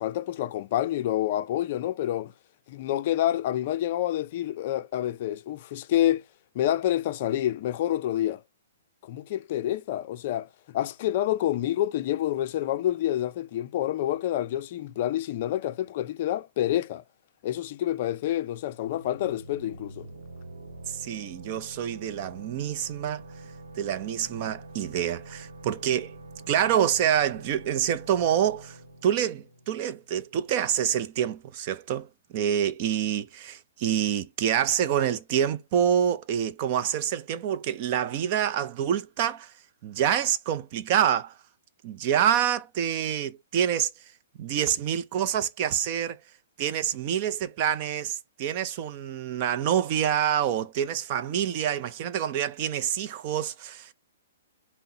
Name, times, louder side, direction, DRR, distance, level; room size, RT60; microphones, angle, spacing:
voice 1, 0.0-2.3 2.7-6.2 6.5-8.4 9.0-17.0 17.4-20.1, left 12 dB, 40° left, 0.4 m, -28 dB
sound 1, 18.9-30.4, right 2 dB, 90° right, 0.9 m, -46 dB
voice 2, 20.9-23.2 23.7-26.2 26.5-39.5 39.8-41.4 41.8-43.9 44.4-46.2 46.6-53.9, right 9 dB, 35° right, 0.4 m, -27 dB
5.7 x 2.0 x 2.7 m
hypercardioid pair, 155°, 0 cm